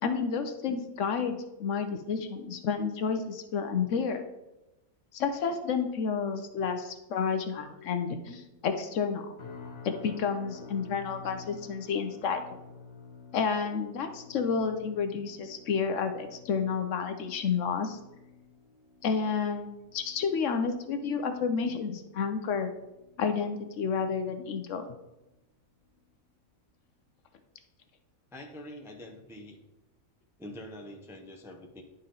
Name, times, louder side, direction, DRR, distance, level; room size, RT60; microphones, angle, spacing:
voice 1, 0.0-4.2 5.1-9.3 9.8-12.4 13.3-18.0 19.0-22.7 23.2-24.8, left 6 dB, 65° left, 7 dB, 0.9 m, -30 dB
sound 1, 9.4-24.6 24.9-25.3 25.8-26.0, left 5 dB, 50° left, 1.3 m, -51 dB
voice 2, 28.3-29.6 30.4-31.8, left 1 dB, 5° right, 1 dB, 0.5 m, -45 dB
10.0 x 4.2 x 3.8 m, 0.99 s
omnidirectional pair, 1.5 m